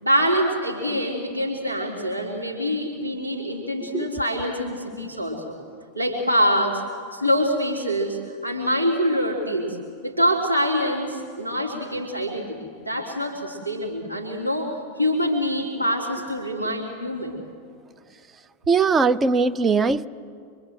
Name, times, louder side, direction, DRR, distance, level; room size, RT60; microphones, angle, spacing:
voice 1, 0.0-5.5 5.9-6.8 7.1-9.8 10.0-17.4, equal, 85° right, -3 dB, 3.0 m, -25 dB
voice 2, 3.8-4.2 18.7-20.1, right 4 dB, 20° right, 12 dB, 0.7 m, -20 dB
24.5 x 24.5 x 7.7 m, 2.3 s
figure-of-eight pair, 90°, 0 cm